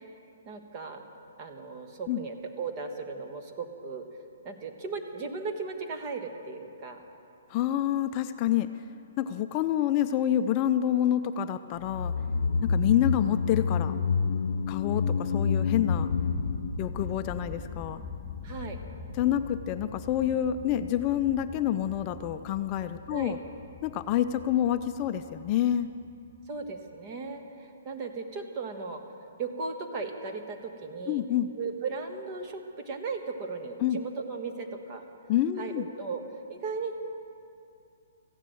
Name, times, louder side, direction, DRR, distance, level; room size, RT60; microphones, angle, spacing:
voice 1, 0.5-1.0 1.4-4.1 4.4-7.0 18.4-18.8 23.1-23.4 26.5-29.0 29.4-31.2 31.6-35.0 35.6-36.2 36.5-37.0, right 4 dB, 30° right, 4 dB, 1.4 m, -36 dB
voice 2, 7.5-8.7 9.2-12.1 12.6-13.9 14.7-16.1 16.8-18.0 19.1-23.4 23.8-25.9 31.1-31.5 33.8-34.0 35.3-35.9, left 11 dB, 30° left, 9 dB, 0.4 m, -27 dB
sound 1, 11.8-18.2 18.5-18.6, left 5 dB, 75° left, 0.8 m, -29 dB
sound 2, 14.6-27.0, left 4 dB, 10° left, 1.8 m, -44 dB
15.0 x 9.9 x 7.6 m, 2.5 s
hypercardioid pair, 150°, 0 cm